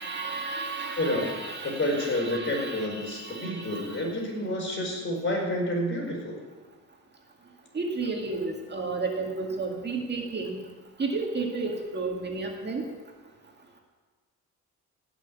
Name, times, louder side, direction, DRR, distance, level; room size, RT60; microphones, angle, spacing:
voice 1, 0.0-4.0 7.7-10.6 11.0-12.8, right 3 dB, 35° right, 1 dB, 2.1 m, -32 dB
voice 2, 1.0-1.3 1.6-6.4, left 1 dB, 40° left, 0 dB, 4.8 m, -29 dB
17.0 x 6.4 x 8.3 m, 1.4 s
cardioid pair, 90°, 30 cm